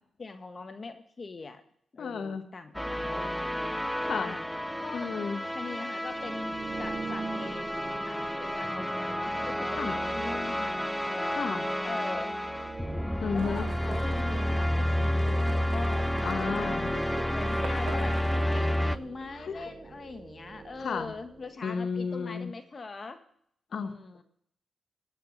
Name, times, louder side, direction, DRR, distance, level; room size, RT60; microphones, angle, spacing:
voice 1, 0.2-1.6 1.9-3.7 4.2-4.4 4.8-5.1 5.5-7.7 8.1-11.3 11.8-12.3 13.3-16.8 17.2-18.2 18.5-23.2 23.7-24.2, left 4 dB, 45° left, 9 dB, 1.7 m, -42 dB
voice 2, 2.0-2.4 4.1-4.4 4.9-5.4 9.8-10.0 11.3-11.7 13.2-13.7 16.2-16.9 19.3-19.7 20.8-21.1 21.6-22.5 23.7-23.9, left 5 dB, 65° left, 10 dB, 1.4 m, -33 dB
sound 1, 2.7-19.0, equal, 5° left, 0.7 m, -30 dB
sound 2, 6.0-21.8, right 4 dB, 45° right, 0.6 m, -45 dB
Livestock farm animals working animals, 13.4-19.0, right 7 dB, 70° right, 1.2 m, -43 dB
16.5 x 10.0 x 6.7 m, 0.66 s
supercardioid pair, 45°, 0 cm